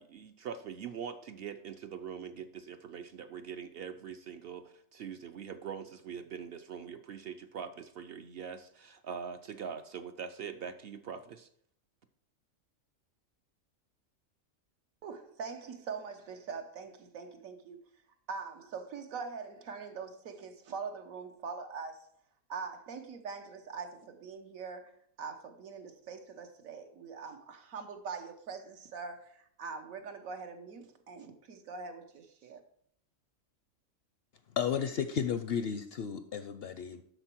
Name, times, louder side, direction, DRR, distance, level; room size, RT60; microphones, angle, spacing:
voice 1, 0.0-11.5, right 7 dB, 65° right, 0.6 m, -43 dB
voice 2, 15.0-17.8 18.3-22.1 22.5-32.6, right 5 dB, 85° right, 1.4 m, -43 dB
voice 3, 34.6-37.0, left 7 dB, 65° left, 0.6 m, -33 dB
7.9 x 6.2 x 4.4 m
omnidirectional pair, 1.4 m